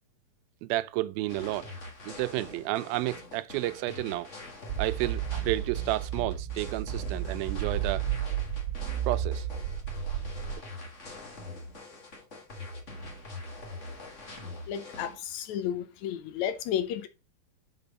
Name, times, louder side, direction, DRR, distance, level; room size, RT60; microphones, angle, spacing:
voice 1, 0.6-1.7 2.0-4.3 4.8-8.0 9.1-9.5, right 17 dB, 90° right, 2.4 m, -31 dB
sound 1, 1.3-15.1, left 2 dB, 40° left, 1.0 m, -43 dB
sound 2, 4.7-10.5, right 10 dB, 50° right, 2.0 m, -32 dB
voice 2, 14.7-17.1, left 10 dB, 75° left, 1.7 m, -32 dB
6.0 x 5.4 x 5.1 m
omnidirectional pair, 4.1 m